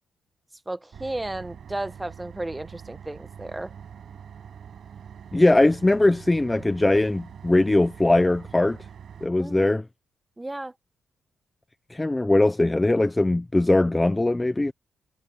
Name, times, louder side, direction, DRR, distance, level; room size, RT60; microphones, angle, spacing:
voice 1, 0.7-3.7 9.4-9.8 10.4-10.7, right 1 dB, 10° right, 1.2 m, -34 dB
sound 1, 0.9-9.3, right 8 dB, 50° right, 5.1 m, -44 dB
voice 2, 5.3-8.8 9.2-9.8 11.9-14.7, left 2 dB, 10° left, 0.5 m, -20 dB
cardioid pair, 145°, 0 cm